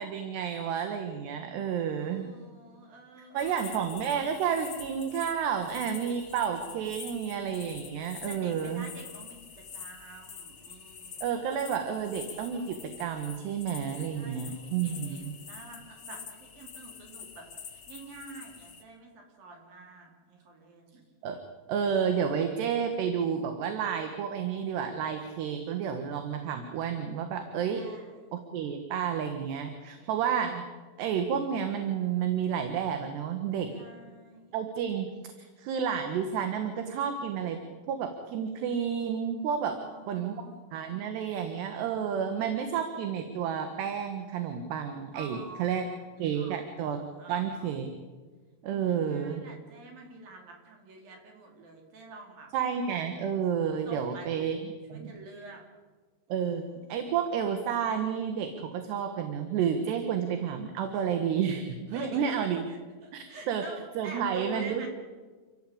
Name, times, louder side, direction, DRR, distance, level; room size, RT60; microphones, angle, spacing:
voice 1, 0.0-2.3 3.3-8.9 11.2-15.3 21.2-21.4 21.7-27.8 28.3-30.6 31.0-33.7 34.5-35.1 35.4-37.6 37.9-39.8 40.1-40.4 40.7-45.8 46.2-47.0 47.3-47.9 48.6-49.5 52.5-54.6 54.9-55.1 56.3-56.6 56.9-62.6 63.1-63.6 64.0-64.9, right 7 dB, 65° right, 6 dB, 3.4 m, -30 dB
voice 2, 1.7-3.6 8.3-11.4 14.1-21.0 27.7-28.3 30.0-30.1 33.7-34.5 39.7-40.6 45.1-46.0 46.3-46.6 47.0-47.7 48.6-52.5 53.9-54.6 54.9-55.6 56.4-57.0 61.9-62.2 62.7-64.9, right 3 dB, 50° right, 1 dB, 5.4 m, -47 dB
sound 1, 3.4-18.8, left 7 dB, 55° left, 1.5 m, -46 dB
29.5 x 15.0 x 8.7 m, 1.4 s
omnidirectional pair, 5.6 m